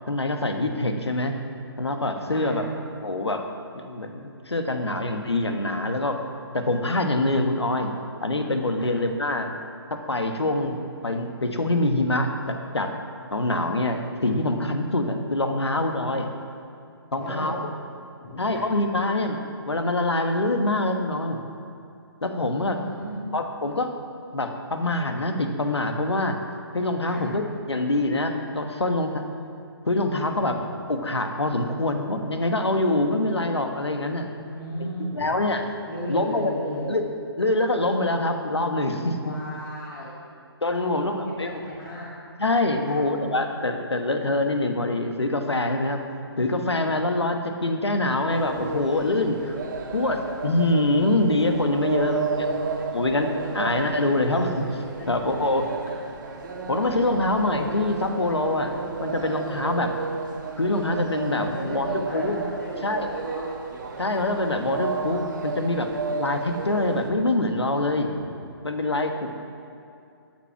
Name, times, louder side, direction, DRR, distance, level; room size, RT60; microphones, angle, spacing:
voice 1, 0.1-1.3 1.8-2.6 3.0-3.4 3.7-6.2 6.5-7.9 8.2-9.5 9.9-10.8 11.0-12.9 13.3-16.3 17.1-17.6 18.4-19.4 19.7-21.4 22.2-22.8 23.3-23.9 24.3-26.4 26.7-29.2 29.9-30.6 30.9-34.3 34.8-35.7 36.1-36.5 36.9-37.0 37.4-39.3 40.6-41.6 42.4-46.0 46.4-49.6 49.9-52.5 52.9-55.6 56.7-59.9 60.6-62.4 62.8-63.1 64.0-68.1 68.6-69.3, left 2 dB, 85° left, 5 dB, 1.3 m, -25 dB
voice 2, 2.3-2.7 8.8-8.9 17.2-17.6 18.2-18.7 22.5-23.3 27.1-27.3 30.4-30.6 34.4-35.3 35.8-36.9 39.2-40.1 40.9-42.1 42.9-43.0 52.1-52.6 53.6-53.7 55.0-55.9 57.2-57.4 61.4-63.4 68.0-68.3, equal, 50° left, -7 dB, 3.3 m, -36 dB
sound 1, 48.3-67.1, right 4 dB, 45° right, 1.3 m, -33 dB
12.0 x 7.5 x 5.9 m, 2.5 s
figure-of-eight pair, 140°, 14 cm